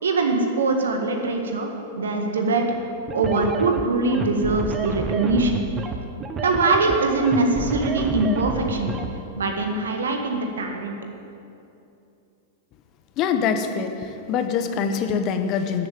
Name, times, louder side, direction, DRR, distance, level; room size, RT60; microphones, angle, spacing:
voice 1, 0.0-2.6 3.1-5.7 6.4-8.9 9.4-11.0, right 3 dB, 70° right, 4 dB, 1.8 m, -22 dB
sound 1, 3.1-9.1, right 4 dB, 20° right, 1.0 m, -29 dB
voice 2, 13.2-15.9, left 6 dB, 35° left, 7 dB, 1.2 m, -24 dB
12.5 x 7.9 x 9.1 m, 2.7 s
figure-of-eight pair, 95°, 0 cm